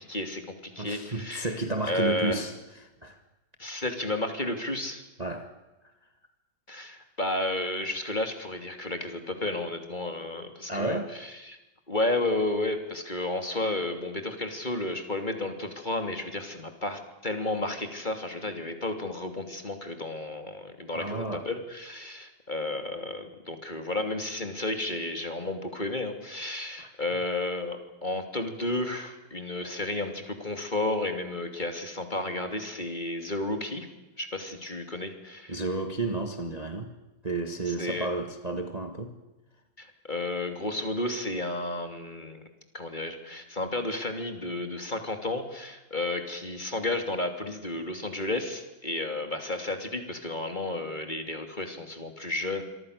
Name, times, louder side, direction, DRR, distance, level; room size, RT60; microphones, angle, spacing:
voice 1, 0.0-1.6 1.8-2.4 3.6-5.0 6.7-11.6 11.9-33.9 34.2-35.6 37.7-38.1 39.8-42.5 42.7-52.6, left 2 dB, 25° left, 6 dB, 3.0 m, -32 dB
voice 2, 0.8-2.5 2.8-3.2 5.2-5.5 10.7-11.1 20.9-21.5 26.8-26.9 35.5-36.9 37.2-39.1, right 2 dB, 20° right, 6 dB, 1.9 m, -31 dB
27.0 x 24.0 x 6.7 m, 1.0 s
omnidirectional pair, 2.1 m